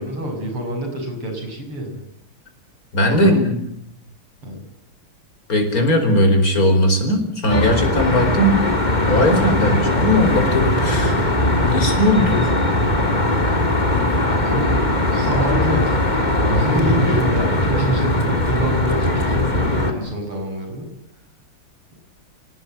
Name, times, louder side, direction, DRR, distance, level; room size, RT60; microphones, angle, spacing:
voice 1, 0.0-2.0 2.9-3.4 4.4-4.6 14.3-20.9, equal, 85° right, 4 dB, 7.3 m, -27 dB
voice 2, 2.9-3.6 5.5-8.6 9.1-11.3 11.6-12.5 16.5-16.6, left 1 dB, 40° left, 5 dB, 5.1 m, -18 dB
Traffic noise roadway noise, 7.5-19.9, left 1 dB, 20° left, 3.0 m, -19 dB
28.0 x 18.5 x 9.0 m, 0.71 s
omnidirectional pair, 2.4 m